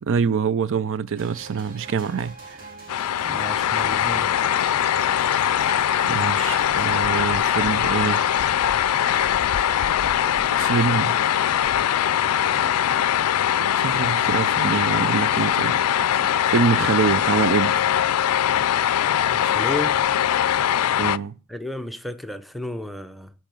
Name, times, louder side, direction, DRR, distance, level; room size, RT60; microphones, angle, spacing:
voice 1, 0.0-2.6 5.7-8.2 10.5-11.2 13.6-15.8 16.5-17.7 21.0-21.3, right 6 dB, 60° right, 0.5 m, -25 dB
sound 1, 1.2-6.9, right 2 dB, 40° right, 3.8 m, -42 dB
sound 2, 2.9-21.2, left 10 dB, 85° left, 0.4 m, -21 dB
voice 2, 3.2-4.3 19.3-20.0 21.5-23.3, left 1 dB, ahead, 0.6 m, -32 dB
sound 3, 4.4-16.4, right 3 dB, 80° right, 1.3 m, -42 dB
10.5 x 4.6 x 7.6 m
head